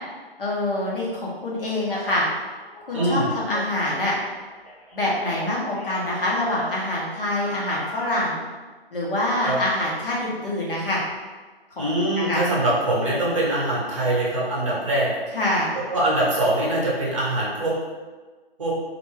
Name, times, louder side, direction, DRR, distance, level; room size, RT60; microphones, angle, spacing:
voice 1, 0.4-2.2 2.9-4.1 4.9-8.4 8.9-11.0 11.8-11.9 12.2-12.4 15.3-15.8, left 1 dB, 60° left, -5 dB, 1.1 m, -25 dB
Telephone, 1.8-2.2 2.7-4.3 4.6-6.8 7.3-8.1, right 1 dB, 35° left, 1.0 m, -40 dB
voice 2, 2.9-3.3 9.4-9.6 11.8-15.1 15.9-17.7 18.6-18.7, right 1 dB, 30° right, -5 dB, 0.8 m, -23 dB
2.5 x 2.1 x 3.3 m, 1.3 s
figure-of-eight pair, 150°, 31 cm